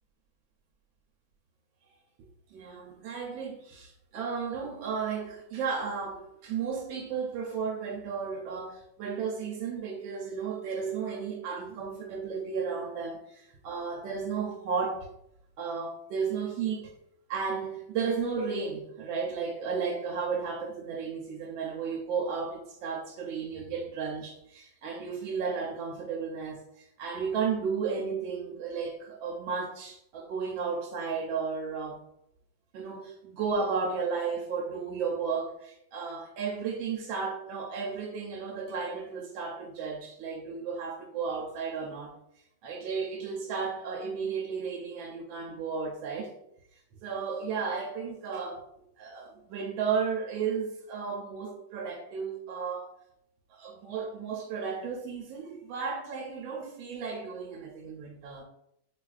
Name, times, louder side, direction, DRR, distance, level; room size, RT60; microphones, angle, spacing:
voice 1, 2.5-15.1 15.6-16.9 17.3-32.0 32.7-42.1 42.6-46.3 47.0-48.6 49.0-52.9 53.5-58.4, right 5 dB, 90° right, 1.3 m, -34 dB
4.5 x 2.4 x 2.3 m
omnidirectional pair, 2.0 m